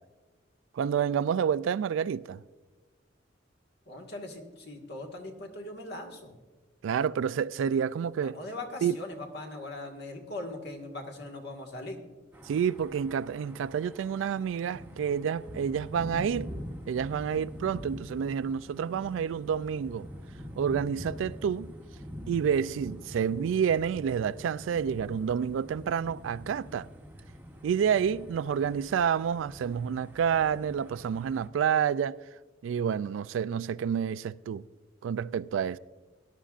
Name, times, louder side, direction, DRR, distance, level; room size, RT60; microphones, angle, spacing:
voice 1, 0.8-2.4 6.8-8.4 8.8-9.0 12.5-16.5 16.9-20.1 20.6-21.7 22.3-26.9 27.6-32.2 32.6-34.6 35.0-35.8, right 7 dB, 75° right, 0.3 m, -29 dB
voice 2, 3.9-6.3 8.2-12.0, left 2 dB, 60° left, 1.7 m, -40 dB
sound 1, 12.3-31.5, equal, 10° right, 0.9 m, -45 dB
18.0 x 11.5 x 2.5 m
head